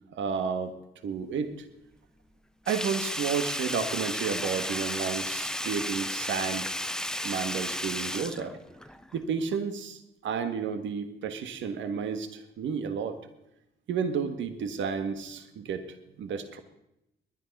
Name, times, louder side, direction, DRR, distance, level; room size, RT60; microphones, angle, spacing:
voice 1, 0.1-0.7 1.0-1.7 2.7-6.7 7.2-8.6 9.1-13.2 13.9-16.6, right 6 dB, 70° right, 9 dB, 1.6 m, -32 dB
Sink (filling or washing), 2.7-9.2 9.5-9.6, left 1 dB, 5° left, 0.7 m, -33 dB
20.0 x 11.0 x 5.4 m, 0.86 s
cardioid pair, 90°, 20 cm